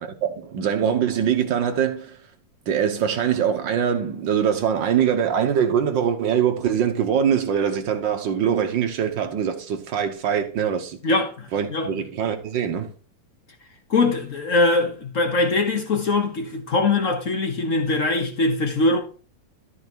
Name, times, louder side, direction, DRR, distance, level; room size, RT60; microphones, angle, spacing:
voice 1, 0.0-2.2 2.7-11.0 11.5-12.9, right 8 dB, 75° right, 1.0 m, -23 dB
voice 2, 11.0-11.9 13.9-19.0, left 3 dB, 55° left, 0.8 m, -22 dB
13.0 x 4.5 x 4.5 m
omnidirectional pair, 3.4 m